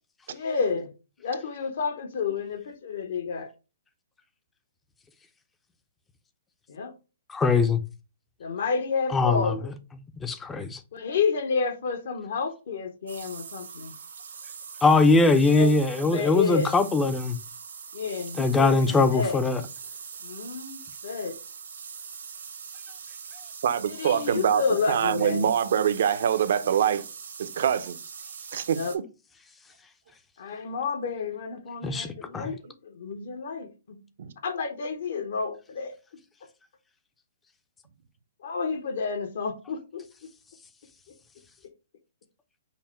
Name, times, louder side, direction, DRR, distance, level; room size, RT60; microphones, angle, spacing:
voice 1, 0.3-0.9 1.2-3.5 6.7-6.9 8.4-9.7 10.9-13.9 15.5-16.7 17.9-19.4 20.2-21.4 23.8-25.5 28.7-28.9 30.4-34.0 34.4-35.9 38.4-40.0, left 5 dB, 65° left, 0.9 m, -30 dB
voice 2, 7.3-7.8 9.1-9.5 10.2-10.8 14.8-17.4 18.4-19.6 31.8-32.1 32.3-32.5, left 3 dB, 10° left, 0.5 m, -21 dB
sound 1, 13.1-29.0, right 6 dB, 85° right, 1.3 m, -42 dB
voice 3, 23.6-27.0 27.4-28.0 28.5-28.8 34.2-34.3, right 8 dB, 60° right, 0.6 m, -24 dB
5.7 x 2.1 x 4.2 m
hypercardioid pair, 155°, 0 cm